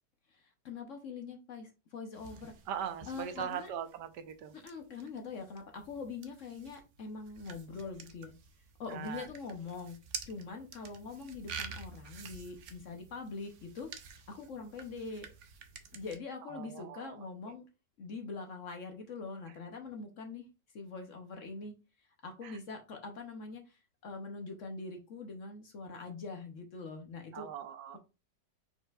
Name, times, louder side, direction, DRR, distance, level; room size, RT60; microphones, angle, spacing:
voice 1, 0.3-2.5 3.1-3.7 4.5-8.4 8.8-10.0 10.3-13.9 14.3-15.3 15.9-17.6 18.0-20.5 20.7-21.8 22.2-27.5, left 4 dB, 55° left, 4 dB, 1.0 m, -43 dB
sound 1, 2.1-16.2, right 6 dB, 60° right, 0.8 m, -49 dB
voice 2, 2.7-4.5 8.9-9.3 16.4-17.2 22.4-22.6 27.3-28.0, right 8 dB, 80° right, 10 dB, 1.3 m, -40 dB
5.2 x 4.3 x 2.3 m, 0.30 s
omnidirectional pair, 1.8 m